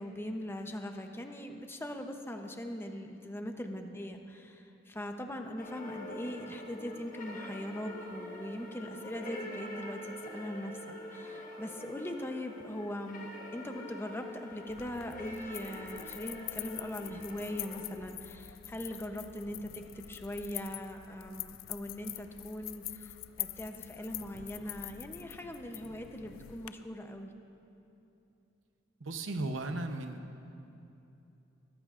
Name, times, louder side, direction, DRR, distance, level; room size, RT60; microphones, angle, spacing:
voice 1, 0.0-10.7 11.1-23.1 23.4-27.3, left 1 dB, 10° left, 4 dB, 0.7 m, -41 dB
sound 1, 5.6-17.9, left 1 dB, 45° left, 1.3 m, -45 dB
sound 2, 14.7-26.7, left 14 dB, 90° left, 0.4 m, -45 dB
voice 2, 29.0-30.4, right 2 dB, 75° right, 7 dB, 0.8 m, -36 dB
21.0 x 14.0 x 2.5 m, 2.8 s
head